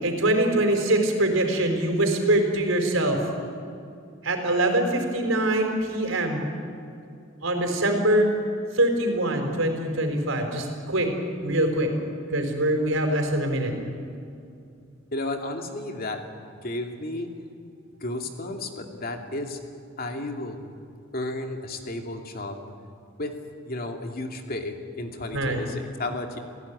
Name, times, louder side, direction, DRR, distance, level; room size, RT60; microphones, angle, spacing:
voice 1, 0.0-3.2 4.2-6.4 7.4-8.3 8.7-11.1 11.4-11.9 12.3-13.7 25.3-25.6, right 1 dB, 80° right, 4 dB, 4.6 m, -23 dB
voice 2, 15.1-17.3 18.0-19.6 20.0-20.7 21.1-22.7 23.2-23.3 23.6-26.4, left 2 dB, 50° left, 4 dB, 2.7 m, -33 dB
29.5 x 16.5 x 9.8 m, 2.5 s
head